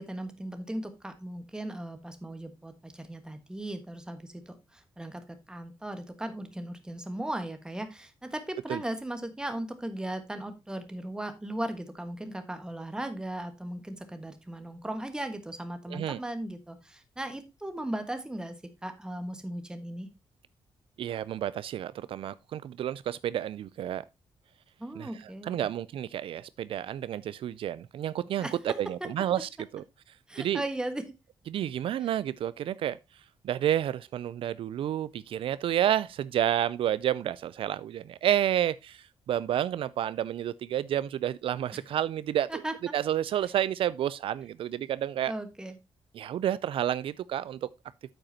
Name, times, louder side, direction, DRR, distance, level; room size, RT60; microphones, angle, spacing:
voice 1, 0.0-4.5 5.0-18.5 18.8-20.1 24.8-25.7 28.4-28.8 30.3-31.0 42.5-42.9 45.3-45.7, right 1 dB, 10° right, 1.4 m, -37 dB
voice 2, 15.9-16.2 21.0-24.0 25.0-25.1 25.4-29.8 30.4-30.6 31.5-33.0 33.4-42.6 42.9-45.3 46.1-47.7, right 11 dB, 70° right, 0.4 m, -30 dB
8.8 x 7.9 x 2.8 m
wide cardioid pair, 145°, 10 cm